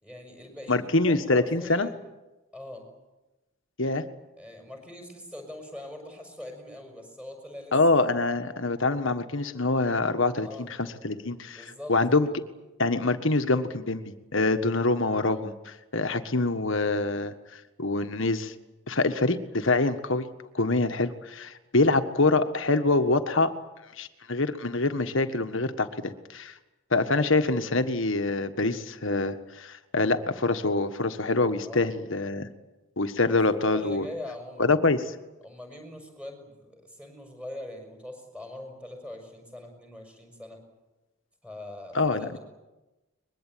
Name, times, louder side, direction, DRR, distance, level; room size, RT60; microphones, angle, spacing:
voice 1, 0.0-2.1 2.5-2.9 4.4-7.7 10.4-10.7 11.5-12.3 31.6-31.9 33.2-34.8 35.4-40.6 41.4-42.4, left 1 dB, 5° right, 4 dB, 6.2 m, -42 dB
voice 2, 0.7-1.9 3.8-4.0 7.7-12.3 12.8-18.5 18.9-20.3 20.5-23.5 24.0-26.5 26.9-32.5 33.0-34.1 34.6-35.1 41.9-42.4, left 2 dB, 60° left, 8 dB, 1.6 m, -25 dB
23.0 x 21.5 x 9.3 m, 1.1 s
head